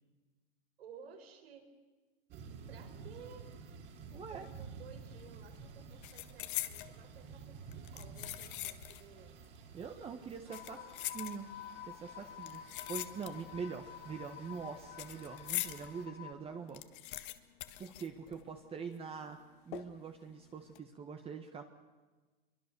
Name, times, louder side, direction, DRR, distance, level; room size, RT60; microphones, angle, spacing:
voice 1, 0.8-1.7 2.7-3.5 4.3-9.3 9.9-11.0 12.2-12.4 18.3-18.4, right 7 dB, 85° right, 5 dB, 5.0 m, -56 dB
sound 1, 2.3-16.1, right 5 dB, 40° right, 3.2 m, -52 dB
voice 2, 4.1-4.5 9.7-10.8 11.1-11.5 11.9-16.8 17.8-19.4 19.6-21.6, right 6 dB, 20° right, 5 dB, 1.4 m, -44 dB
sound 2, 5.0-5.3 5.5-6.9 7.7-9.1 9.4-9.5 10.3-11.7 12.4-13.6 13.9-15.9 16.3-16.4 16.5-18.7 18.9-19.0 19.7-20.1 20.6-20.8, left 16 dB, 60° left, 1.6 m, -42 dB
sound 3, 10.5-16.3, left 11 dB, 30° left, 1.8 m, -50 dB
24.5 x 23.5 x 6.9 m, 1.3 s
supercardioid pair, 140°, 29 cm